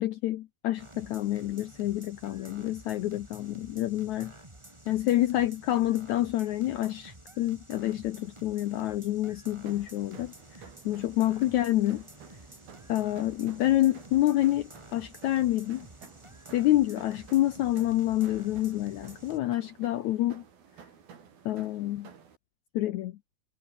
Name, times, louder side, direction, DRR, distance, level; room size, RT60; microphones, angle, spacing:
voice 1, 0.0-4.3 4.9-10.3 10.9-12.1 12.9-15.9 16.5-20.4 21.5-22.1 22.7-23.1, left 14 dB, 70° left, 1.8 m, -28 dB
sound 1, 0.8-19.4, right 1 dB, 10° right, 2.8 m, -51 dB
sound 2, 9.6-22.4, right 7 dB, 85° right, 5.6 m, -53 dB
omnidirectional pair, 4.1 m